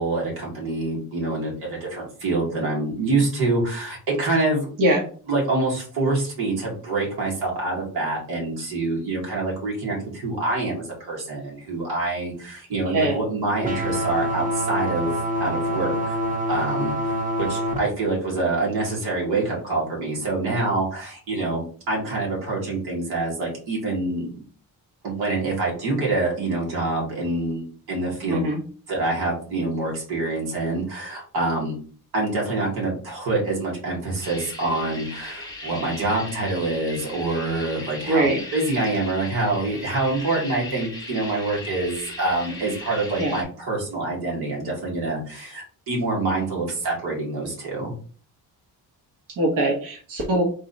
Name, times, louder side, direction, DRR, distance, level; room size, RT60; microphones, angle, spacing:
voice 1, 0.0-4.7 5.3-15.1 15.4-16.2 16.5-24.3 25.0-28.5 28.9-31.8 32.1-47.9, right 2 dB, 90° right, -3 dB, 2.1 m, -26 dB
voice 2, 12.9-13.2 28.3-28.6 38.1-38.4 43.2-43.4 49.4-50.4, right 1 dB, 60° right, -2 dB, 1.2 m, -22 dB
sound 1, 13.6-17.8, equal, 20° right, 0.9 m, -25 dB
sound 2, 34.2-43.4, left 2 dB, 10° left, 1.1 m, -38 dB
3.8 x 2.8 x 4.0 m, 0.42 s
cardioid pair, 140°, 37 cm